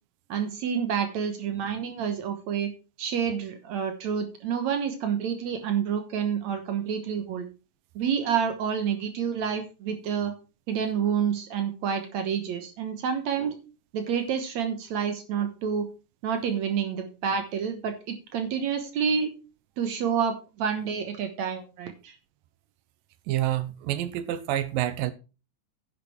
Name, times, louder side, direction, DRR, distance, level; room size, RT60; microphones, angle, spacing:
voice 1, 0.3-2.7 3.0-7.5 8.0-10.3 10.7-13.6 13.9-15.9 16.2-19.3 19.8-22.2, right 7 dB, 60° right, 2.2 m, -28 dB
voice 2, 23.3-25.1, right 13 dB, 80° right, 2.6 m, -28 dB
10.0 x 9.0 x 4.3 m
omnidirectional pair, 4.0 m